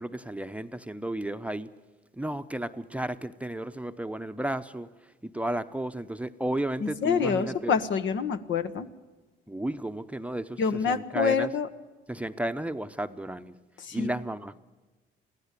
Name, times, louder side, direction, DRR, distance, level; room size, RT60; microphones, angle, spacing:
voice 1, 0.0-1.7 2.1-4.9 5.2-7.8 9.5-11.5 12.1-13.5 13.9-14.6, right 1 dB, 5° right, 0.7 m, -33 dB
voice 2, 6.8-8.9 10.6-11.7 13.8-14.1, left 6 dB, 70° left, 1.3 m, -27 dB
22.5 x 15.5 x 8.3 m
cardioid pair, 90°, 20 cm